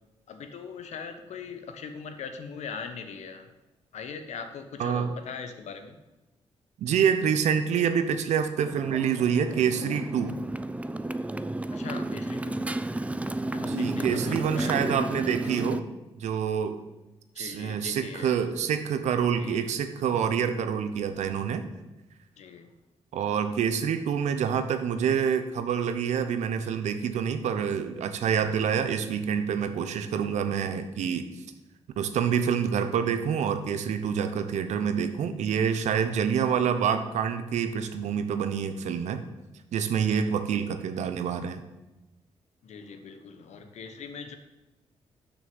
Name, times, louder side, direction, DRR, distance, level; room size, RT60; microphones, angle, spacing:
voice 1, 0.3-3.5 3.9-6.0 11.7-12.7 13.5-14.8 17.3-18.3 19.4-19.7 22.4-22.7 40.2-40.3 42.6-44.3, left 6 dB, 80° left, 8 dB, 1.0 m, -40 dB
voice 2, 4.8-5.1 6.8-10.4 13.6-15.8 16.2-16.8 17.4-21.7 23.1-31.3 32.0-39.2 39.7-41.6, right 7 dB, 85° right, 10 dB, 0.8 m, -27 dB
Motorcycle, 8.6-15.8, right 2 dB, 10° right, 0.4 m, -32 dB
6.4 x 6.2 x 7.1 m, 1.0 s
cardioid pair, 70°, 12 cm